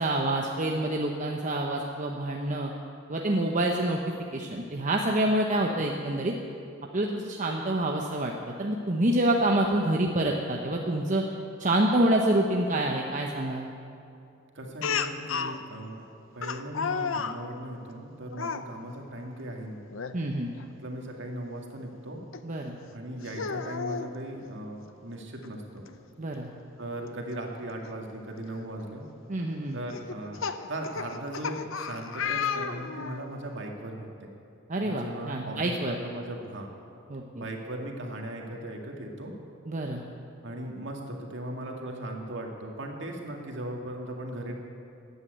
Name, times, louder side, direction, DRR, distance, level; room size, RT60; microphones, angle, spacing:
voice 1, 0.0-2.7 3.1-4.0 4.3-6.3 6.9-8.3 8.6-11.2 11.6-13.7 20.1-20.5 22.4-22.8 26.2-26.5 29.3-29.8 34.7-35.9 37.1-37.5 39.7-40.0, right 1 dB, 40° right, 0 dB, 0.9 m, -27 dB
voice 2, 14.5-16.0 16.3-19.8 20.8-22.2 22.9-25.8 26.8-29.0 29.7-34.3 34.8-36.7 37.3-39.3 40.4-44.5, right 1 dB, 65° right, 1 dB, 2.2 m, -38 dB
Speech, 14.8-15.6 16.4-17.4 18.3-18.6 19.9-20.1 20.6-20.7 22.3-22.4 23.2-24.1 25.4-25.5 25.9-26.0 27.8-27.9 28.6-28.8 29.9-33.2, left 6 dB, 75° left, 0.7 m, -32 dB
14.5 x 9.5 x 9.1 m, 2.6 s
head